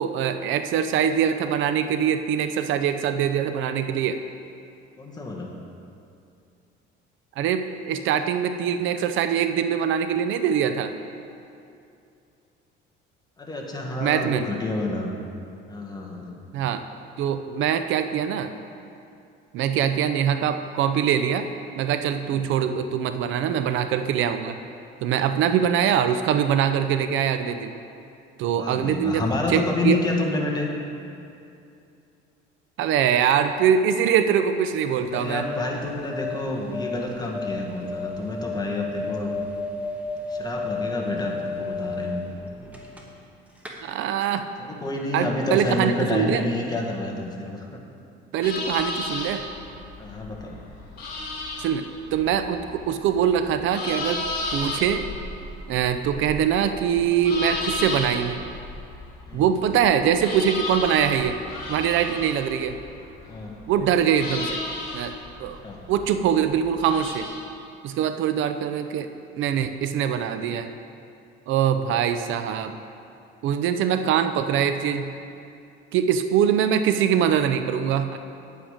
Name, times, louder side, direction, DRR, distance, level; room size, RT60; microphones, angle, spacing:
voice 1, 0.0-4.2 7.4-10.9 14.0-14.5 16.5-16.8 17.2-18.5 19.5-21.5 21.8-24.6 25.0-27.7 28.4-30.0 32.8-35.5 43.8-44.5 45.1-46.5 48.3-49.4 51.6-51.8 52.1-54.2 54.5-55.0 55.7-58.4 59.3-61.4 61.7-62.8 63.7-64.6 64.9-65.1 65.4-65.6 65.9-67.3 67.8-69.1 69.4-70.7 71.5-72.8 73.4-75.1 75.9-78.2, right 8 dB, 65° right, 9 dB, 0.6 m, -23 dB
voice 2, 5.0-5.5 13.4-15.1 15.7-16.4 22.2-22.4 25.6-25.7 28.6-30.7 35.0-39.3 40.3-42.2 44.6-47.8 50.0-50.6 59.3-59.5 63.3-63.6 65.6-65.8, left 2 dB, 20° left, 0 dB, 1.5 m, -29 dB
sound 1, 35.1-43.3 43.6-43.7, left 3 dB, 5° right, 1.3 m, -33 dB
sound 2, 48.4-67.3, left 2 dB, 50° left, 2.9 m, -34 dB
9.6 x 8.8 x 5.0 m, 2.5 s
cardioid pair, 120°, 21 cm